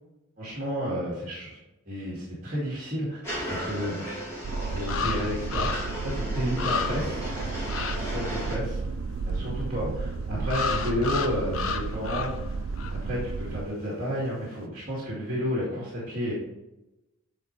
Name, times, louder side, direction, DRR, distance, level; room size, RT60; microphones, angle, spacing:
voice 1, 0.4-1.6 1.9-3.2 3.5-4.1 4.7-7.2 7.9-8.8 9.2-12.5 12.9-16.3, equal, 35° right, -6 dB, 2.4 m, -31 dB
sound 1, 3.2-8.6, equal, 10° left, 2.4 m, -36 dB
sound 2, 4.0-4.1 4.9-6.0 6.3-6.4 6.6-7.2 7.7-8.0 10.5-12.5 12.8-13.0, left 5 dB, 70° left, 0.6 m, -31 dB
sound 3, 4.4-13.7, right 4 dB, 60° right, 0.3 m, -33 dB
9.1 x 4.4 x 3.3 m, 0.97 s
head